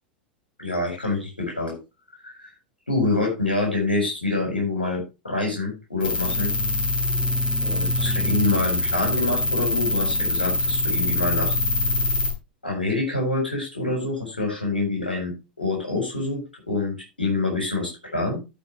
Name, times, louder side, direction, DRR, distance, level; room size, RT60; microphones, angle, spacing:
voice 1, 0.6-1.8 2.2-2.5 2.9-6.5 7.6-11.6 12.6-18.4, left 2 dB, 90° left, -1 dB, 4.2 m, -26 dB
sound 1, 6.0-12.3, left 2 dB, 75° left, 3.4 m, -24 dB
16.5 x 5.5 x 3.0 m, 0.26 s
figure-of-eight pair, 85°, 5 cm